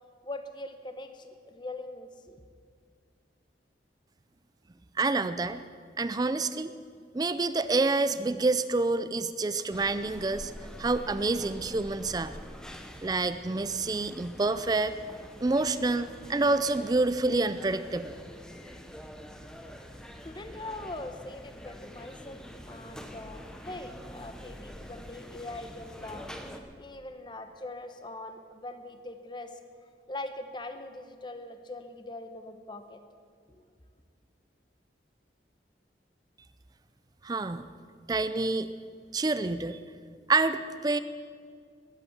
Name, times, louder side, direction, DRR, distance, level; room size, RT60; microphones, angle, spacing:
voice 1, 0.2-2.4 20.2-26.3 26.8-29.6 30.1-33.0 33.5-33.7, left 2 dB, 25° left, 7 dB, 0.9 m, -42 dB
voice 2, 5.0-5.6 6.0-6.7 7.1-10.5 10.8-12.3 13.0-15.0 15.4-18.1 37.2-37.6 38.1-38.7 39.1-39.8 40.3-41.0, right 3 dB, 20° right, 12 dB, 0.4 m, -27 dB
sound 1, 9.7-26.6, equal, 5° left, 0.9 m, -46 dB
20.0 x 8.3 x 7.2 m, 2.1 s
head